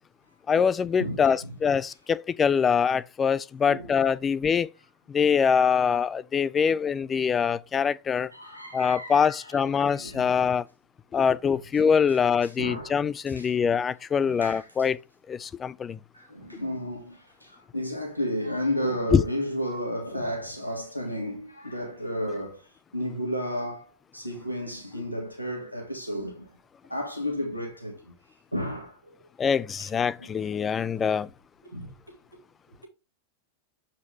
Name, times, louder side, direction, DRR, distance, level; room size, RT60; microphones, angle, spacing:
voice 1, 0.5-4.7 5.1-8.3 8.7-10.6 11.1-15.0 15.3-16.0 19.1-19.2 29.4-31.3, left 6 dB, 20° left, 0.3 m, -24 dB
voice 2, 1.0-1.6 3.7-4.0 8.3-10.5 12.1-13.5 14.2-14.7 16.1-22.6 22.9-26.5 26.9-28.1 28.5-29.1 29.8-29.9 30.2-30.5 31.7-32.0 32.8-32.9, equal, 90° left, 1.7 m, -33 dB
7.1 x 4.4 x 3.3 m
figure-of-eight pair, 90°, 0 cm